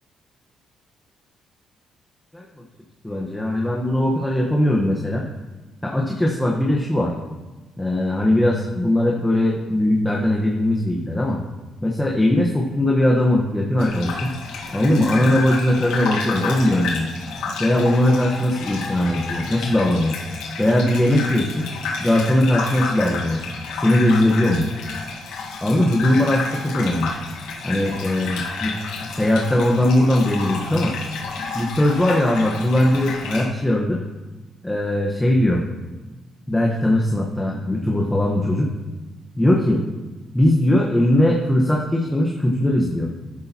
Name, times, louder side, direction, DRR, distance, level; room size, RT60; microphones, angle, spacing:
voice 1, 3.0-5.2 5.8-7.1 7.8-11.4 11.8-14.3 14.7-17.1 17.6-20.2 20.6-21.7 22.0-23.4 23.7-24.7 25.6-27.1 27.6-28.7 29.1-30.9 31.5-34.0 34.6-35.6 36.5-38.7 39.4-39.8 40.3-43.1, left 1 dB, 10° left, -2 dB, 1.3 m, -20 dB
Gurgling / Bathtub (filling or washing), 13.8-33.5, left 4 dB, 90° left, 1.7 m, -31 dB
12.5 x 10.5 x 3.0 m, 1.2 s
cardioid pair, 90°, 0 cm